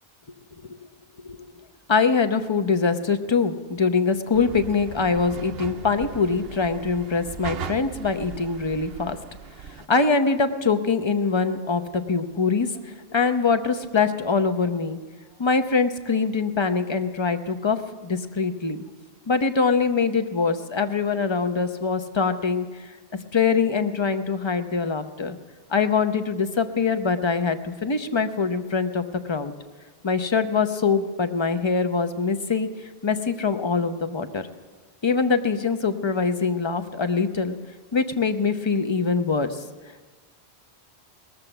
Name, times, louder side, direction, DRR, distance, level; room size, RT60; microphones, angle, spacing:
voice 1, 1.9-9.2 9.9-15.0 15.4-17.8 18.0-18.8 19.3-22.6 23.3-25.4 25.7-29.5 30.0-32.7 33.0-34.5 35.0-37.6 37.9-39.6, left 4 dB, 30° left, 9 dB, 0.7 m, -23 dB
sound 1, 4.3-9.9, right 7 dB, 70° right, 0.8 m, -38 dB
20.0 x 7.4 x 7.9 m, 1.4 s
omnidirectional pair, 1.1 m